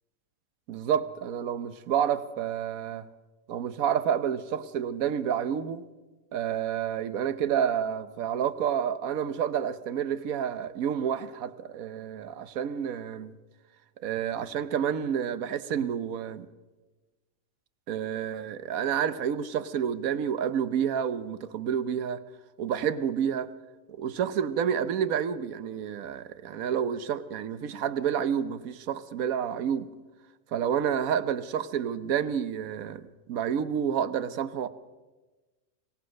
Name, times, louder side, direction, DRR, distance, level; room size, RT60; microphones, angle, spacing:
voice 1, 0.7-3.1 3.5-5.9 6.3-13.3 14.0-16.5 17.9-22.2 22.6-23.5 24.0-29.9 30.5-34.7, right 8 dB, 75° right, 13 dB, 1.3 m, -29 dB
26.0 x 17.0 x 6.4 m, 1.2 s
omnidirectional pair, 1.5 m